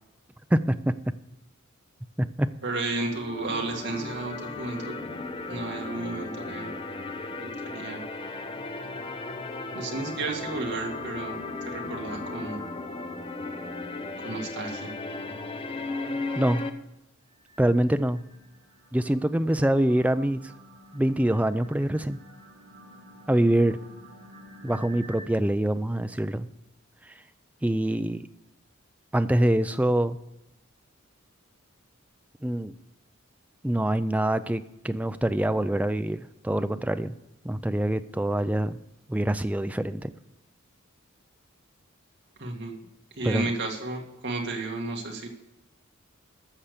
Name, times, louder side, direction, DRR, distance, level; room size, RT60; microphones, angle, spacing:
voice 1, 0.5-1.0 2.2-2.5 16.3-16.6 17.6-18.2 18.9-20.4 20.9-22.2 23.3-23.8 24.6-26.5 27.6-28.2 29.1-30.2 32.4-32.7 33.6-37.1 37.4-38.8 39.1-40.1 43.2-43.5, right 1 dB, 5° right, 11 dB, 0.4 m, -25 dB
voice 2, 2.6-4.9 5.5-6.7 7.4-8.0 9.7-12.6 14.2-14.9 42.4-42.8 43.2-45.3, right 3 dB, 55° right, 1 dB, 2.1 m, -33 dB
sound 1, 3.0-16.7, left 3 dB, 25° left, 0.7 m, -36 dB
sound 2, 17.3-25.3, equal, 75° right, 1.7 m, -50 dB
13.0 x 6.9 x 6.6 m, 0.93 s
head